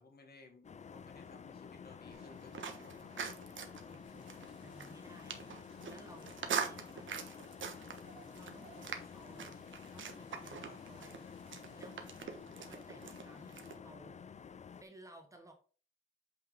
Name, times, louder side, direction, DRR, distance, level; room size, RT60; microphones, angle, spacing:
voice 1, 0.0-3.1 10.6-10.9, left 3 dB, 50° left, 3 dB, 1.9 m, -58 dB
sound 1, 0.6-14.8, left 6 dB, 35° left, 0.4 m, -51 dB
sound 2, 2.1-13.8, right 6 dB, 75° right, 1.3 m, -44 dB
voice 2, 3.9-7.1 8.3-12.0 12.6-14.2 14.8-15.5, right 1 dB, 15° right, 4 dB, 1.3 m, -58 dB
sound 3, 4.0-12.2, left 3 dB, 70° left, 4.4 m, -67 dB
8.3 x 5.7 x 3.7 m, 0.39 s
wide cardioid pair, 165°, 20 cm